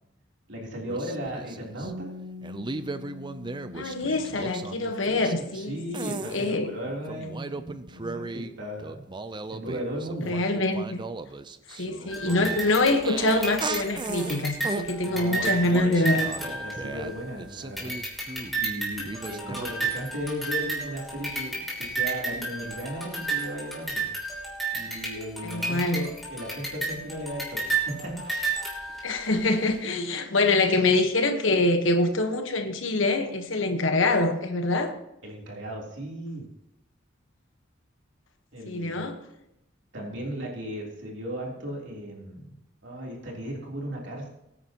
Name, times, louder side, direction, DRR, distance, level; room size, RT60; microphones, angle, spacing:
voice 1, 0.5-2.1 5.4-9.0 9.5-10.4 14.6-14.7 15.0-17.9 18.6-24.0 24.7-28.1 35.2-36.5 38.5-39.0 39.9-44.3, equal, 65° right, 3.4 m, -36 dB
sound 1, 0.9-1.9 2.4-5.7 5.9-6.5 7.1-8.5 8.8-14.9 15.4-18.7 19.1-19.7, right 3 dB, 25° right, 0.5 m, -37 dB
Bass guitar, 1.8-8.1, left 3 dB, 80° right, 1.3 m, -46 dB
voice 2, 3.7-6.7 10.3-11.0 11.7-16.3 25.4-26.1 29.0-35.0 38.6-39.2, left 2 dB, 75° left, 1.3 m, -25 dB
sound 2, 12.1-17.3 17.8-29.3, right 3 dB, ahead, 3.2 m, -32 dB
21.5 x 9.6 x 3.0 m
head